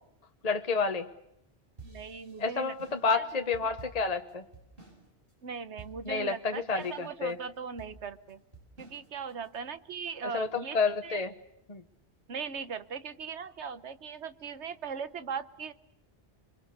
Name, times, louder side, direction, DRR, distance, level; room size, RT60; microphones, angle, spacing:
voice 1, 0.4-1.1 2.4-4.4 6.0-7.3 10.3-11.3 11.7-11.8, left 4 dB, 35° left, 6 dB, 1.1 m, -30 dB
sound 1, 1.8-5.0 5.3-5.4 5.8-6.3 6.8-7.3 7.8-9.6, right 3 dB, 55° right, 7.5 m, -51 dB
voice 2, 1.8-2.7 3.1-3.3 5.4-8.4 8.8-10.8 11.0-11.2 12.3-15.7, right 6 dB, 80° right, 13 dB, 1.4 m, -39 dB
28.0 x 23.0 x 6.7 m, 0.82 s
omnidirectional pair, 1.1 m